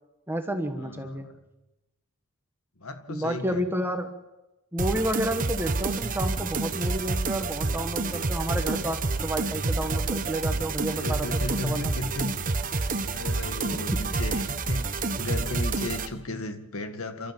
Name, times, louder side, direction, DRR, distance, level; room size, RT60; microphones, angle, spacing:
voice 1, 0.3-1.3 3.1-4.1 4.7-11.3 11.6-11.9 13.9-14.0, right 1 dB, 10° right, 6 dB, 1.2 m, -30 dB
voice 2, 0.8-1.4 2.8-3.7 10.9-12.3 12.8-17.3, left 2 dB, 70° left, 8 dB, 1.8 m, -35 dB
sound 1, 4.8-16.1, right 3 dB, 35° right, 1.1 m, -28 dB
28.0 x 13.0 x 7.5 m, 1.0 s
head